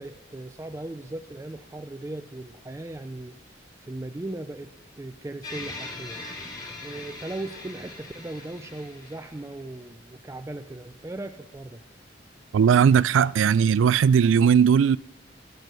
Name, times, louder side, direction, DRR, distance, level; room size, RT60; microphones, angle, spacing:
voice 1, 0.0-3.4 3.8-4.7 5.0-6.2 6.8-11.8, right 2 dB, 15° right, 0.4 m, -38 dB
sound 1, 5.4-9.8, left 2 dB, 25° left, 2.8 m, -40 dB
voice 2, 12.5-15.0, right 7 dB, 85° right, 0.3 m, -18 dB
16.5 x 7.9 x 6.7 m
head